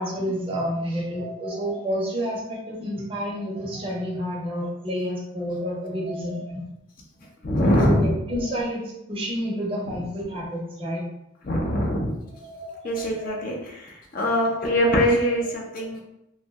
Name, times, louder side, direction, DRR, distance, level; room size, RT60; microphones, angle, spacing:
voice 1, 0.0-6.6 7.7-8.8 9.1-11.1 12.4-13.4 14.8-15.0 15.8-15.9, equal, 25° right, -3 dB, 0.6 m, -29 dB
voice 2, 7.4-8.1 9.9-10.0 11.4-12.1 12.8-16.0, equal, 45° left, 0 dB, 0.5 m, -23 dB
2.6 x 2.0 x 3.4 m, 0.84 s
head